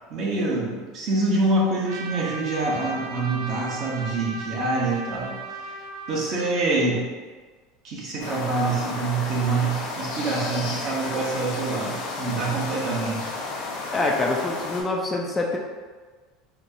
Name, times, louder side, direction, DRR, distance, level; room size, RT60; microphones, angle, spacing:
voice 1, 0.1-5.3 6.1-7.0 7.8-13.3, right 3 dB, 50° right, -4 dB, 1.0 m, -26 dB
Trumpet, 1.8-6.5, right 3 dB, 80° right, 0.4 m, -36 dB
sound 1, 8.2-14.8, left 3 dB, 80° left, 0.8 m, -32 dB
voice 2, 13.9-15.6, left 2 dB, 20° left, 0 dB, 0.4 m, -25 dB
4.2 x 2.1 x 2.7 m, 1.4 s
supercardioid pair, 115°, 0 cm